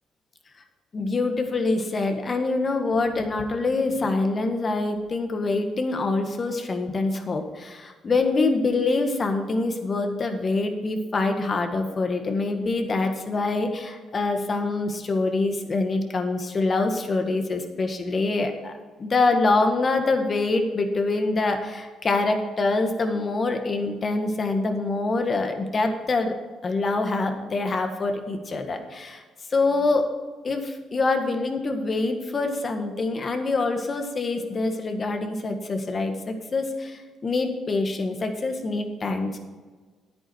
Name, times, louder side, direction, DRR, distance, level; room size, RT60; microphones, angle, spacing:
voice 1, 0.9-18.7 19.0-26.3 26.6-29.2 29.5-30.1 30.4-39.4, left 3 dB, 40° left, 6 dB, 1.6 m, -25 dB
10.0 x 8.8 x 4.7 m, 1.4 s
cardioid pair, 80°, 0 cm